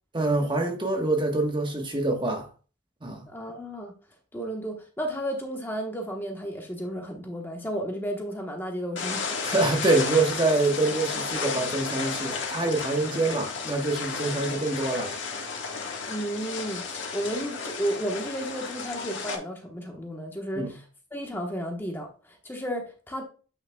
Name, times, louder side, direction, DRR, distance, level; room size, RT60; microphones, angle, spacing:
voice 1, 0.1-2.5 3.0-3.2 9.4-15.1 20.6-20.7, right 2 dB, 25° right, 1.1 m, -25 dB
voice 2, 3.3-3.9 4.3-9.2 16.1-20.8 21.1-23.2, equal, 10° left, 1.1 m, -33 dB
sound 1, 9.0-19.4, left 5 dB, 80° left, 1.4 m, -33 dB
8.7 x 5.8 x 2.2 m
head